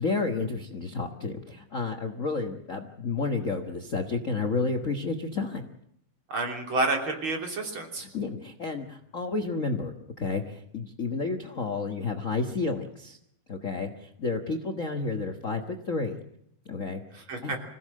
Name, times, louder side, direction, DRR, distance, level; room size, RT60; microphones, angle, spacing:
voice 1, 0.0-5.7 8.0-13.2 13.5-16.2 16.6-17.5, left 4 dB, 65° left, 7 dB, 0.7 m, -31 dB
voice 2, 6.3-8.1 17.1-17.6, right 2 dB, 40° right, 3 dB, 3.8 m, -29 dB
26.0 x 16.5 x 7.6 m, 0.74 s
omnidirectional pair, 3.8 m